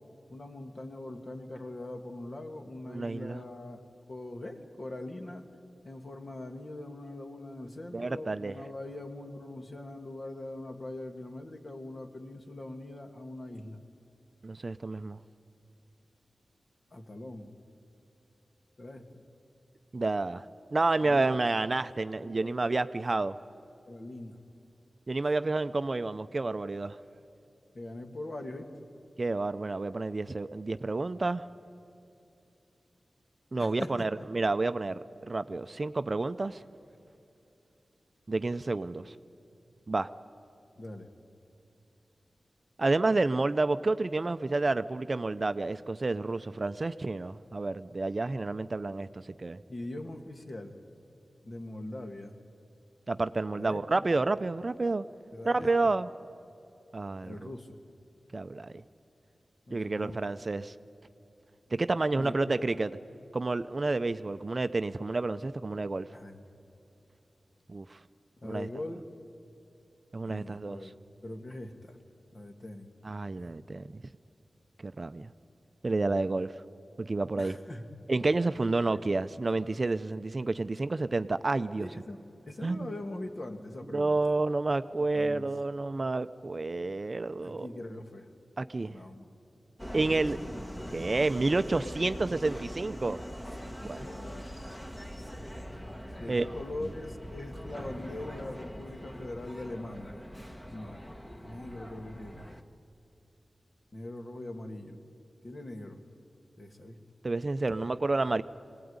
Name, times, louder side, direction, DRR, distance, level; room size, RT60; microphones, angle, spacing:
voice 1, 0.3-3.8 4.1-5.5 5.8-13.8 16.9-17.5 18.8-19.1 21.0-21.3 22.2-22.6 23.9-24.4 27.7-28.7 33.6-34.1 40.8-41.1 49.7-50.7 51.4-52.3 53.5-53.8 55.3-55.9 57.2-57.8 59.7-60.2 62.1-62.8 66.1-66.4 68.4-69.0 70.2-71.0 71.2-72.0 72.3-72.9 77.4-77.9 78.9-79.0 81.8-82.2 82.5-84.3 85.0-85.5 87.4-88.3 88.9-89.3 90.0-90.1 90.4-90.5 93.7-94.5 96.2-100.2 100.7-101.0 101.4-102.5 103.9-105.0 105.4-106.0 106.6-107.0, left 1 dB, 45° left, 5 dB, 1.9 m, -42 dB
voice 2, 2.9-3.4 7.9-8.5 14.4-15.2 19.9-20.4 20.7-23.4 25.1-27.0 29.2-31.5 33.5-35.0 35.3-36.6 38.3-39.1 39.9-40.1 42.8-49.6 53.1-55.0 55.4-56.1 56.9-57.4 58.3-58.8 59.7-60.7 61.7-62.9 63.3-66.1 67.7-68.0 68.5-68.7 70.1-70.8 73.0-73.9 74.8-75.3 75.8-76.5 77.0-77.5 78.1-81.9 82.6-82.9 83.9-87.8 88.6-89.0 89.9-90.4 90.9-93.2 93.9-94.1 96.3-96.4 107.2-108.4, right 3 dB, 40° right, 12 dB, 0.5 m, -30 dB
Subway metro underground, 89.8-102.6, equal, 10° left, 1.3 m, -42 dB
23.0 x 18.5 x 9.6 m, 2.7 s
wide cardioid pair, 90°, 0 cm